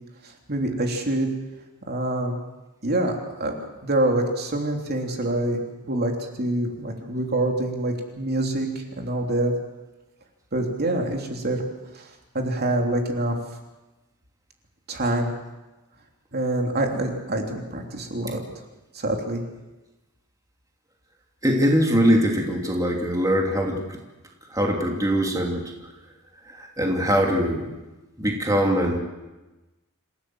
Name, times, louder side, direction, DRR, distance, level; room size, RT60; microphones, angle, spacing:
voice 1, 0.5-1.3 1.9-2.4 2.8-3.5 3.8-6.1 6.4-9.5 10.5-11.7 11.9-12.0 12.3-13.4 14.9-15.3 16.3-18.4 18.9-19.4, right 1 dB, 45° right, 2 dB, 3.2 m, -25 dB
voice 2, 21.4-24.0 24.5-25.7 26.5-27.7 28.2-29.0, equal, 15° right, 0 dB, 2.8 m, -22 dB
27.5 x 16.0 x 7.7 m, 1.1 s
head